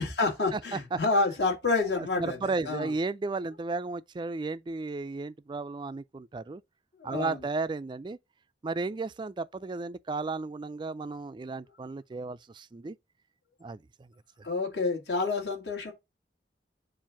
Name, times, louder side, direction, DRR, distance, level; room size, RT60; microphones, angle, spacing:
voice 1, 0.0-2.9 7.0-7.4 14.4-15.9, left 3 dB, 65° left, 2.1 m, -28 dB
voice 2, 0.5-1.0 2.0-6.6 7.0-8.2 8.6-13.0 13.6-14.1, right 3 dB, 25° right, 0.3 m, -34 dB
7.3 x 2.6 x 5.8 m
head